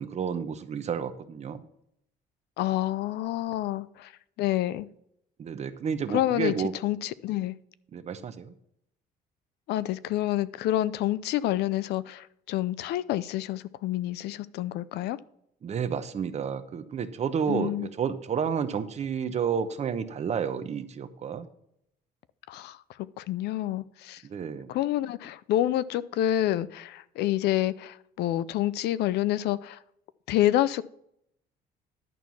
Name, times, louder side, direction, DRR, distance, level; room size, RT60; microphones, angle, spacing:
voice 1, 0.0-1.6 5.4-6.7 7.9-8.5 15.6-21.5 24.2-24.7, right 7 dB, 40° right, 0.9 m, -31 dB
voice 2, 2.6-4.1 4.4-4.9 6.1-6.5 6.8-7.5 9.7-15.2 17.5-17.9 22.5-22.8 23.2-24.2 24.7-29.8 30.3-30.8, left 13 dB, 75° left, 0.5 m, -28 dB
11.0 x 4.5 x 7.0 m
cardioid pair, 110°, 17 cm